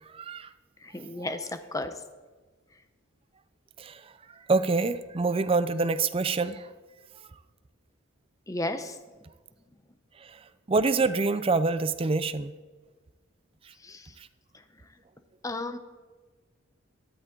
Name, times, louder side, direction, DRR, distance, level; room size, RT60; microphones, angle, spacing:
voice 1, 0.1-0.5 3.8-4.0 4.5-6.6 10.7-12.5, right 3 dB, 25° right, 13 dB, 0.4 m, -26 dB
voice 2, 0.8-1.5 1.7-1.9 8.5-8.9 13.8-14.1 15.4-15.8, left 2 dB, 15° left, 9 dB, 0.7 m, -33 dB
13.0 x 12.5 x 3.8 m, 1.3 s
head